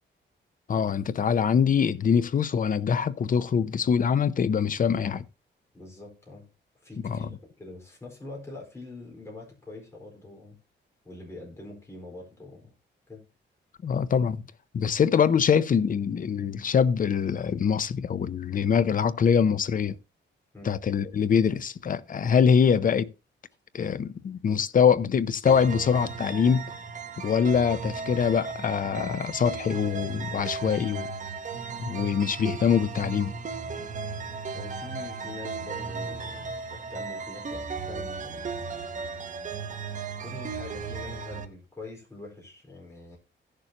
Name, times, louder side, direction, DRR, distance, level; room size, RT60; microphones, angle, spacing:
voice 1, 0.7-5.2 7.0-7.3 13.8-14.4 14.7-20.0 20.6-23.1 23.7-26.6 27.2-31.1 31.8-33.3, left 7 dB, 45° left, 0.6 m, -24 dB
voice 2, 5.7-6.4 6.8-10.6 11.0-12.7 13.1-13.2 20.5-20.7 34.5-38.8 40.2-43.2, left 2 dB, 15° left, 4.5 m, -44 dB
sound 1, 25.5-41.5, right 5 dB, 40° right, 1.0 m, -36 dB
16.5 x 6.7 x 2.9 m
wide cardioid pair, 135°, 19 cm